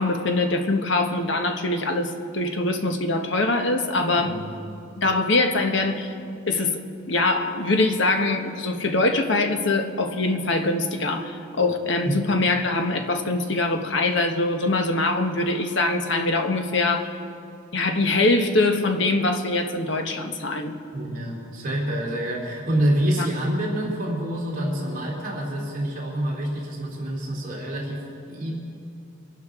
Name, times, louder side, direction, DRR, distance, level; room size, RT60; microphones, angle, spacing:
voice 1, 0.0-4.3 5.0-6.1 6.5-6.8 7.1-17.1 17.7-20.7 23.2-23.3, left 2 dB, 60° left, 5 dB, 1.1 m, -23 dB
voice 2, 20.9-28.5, right 1 dB, 40° right, -3 dB, 2.5 m, -27 dB
25.0 x 11.5 x 3.7 m, 2.5 s
head